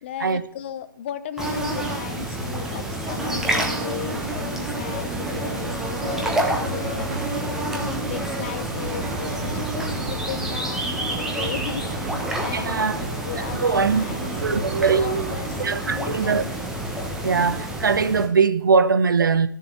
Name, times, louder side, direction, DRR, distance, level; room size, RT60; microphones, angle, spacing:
voice 1, 0.0-5.7 6.0-7.2 7.7-11.9 12.4-14.7 15.0-15.6 15.8-16.5, left 10 dB, 35° left, 0.7 m, -36 dB
sound 1, 1.4-18.3, right 1 dB, 5° right, 1.2 m, -28 dB
sound 2, 6.0-15.4, right 3 dB, 45° right, 2.0 m, -36 dB
voice 2, 12.5-13.0 13.6-14.0 14.4-15.2 15.6-16.4 17.2-19.5, right 5 dB, 70° right, 0.9 m, -21 dB
12.5 x 7.1 x 4.6 m
figure-of-eight pair, 150°, 11 cm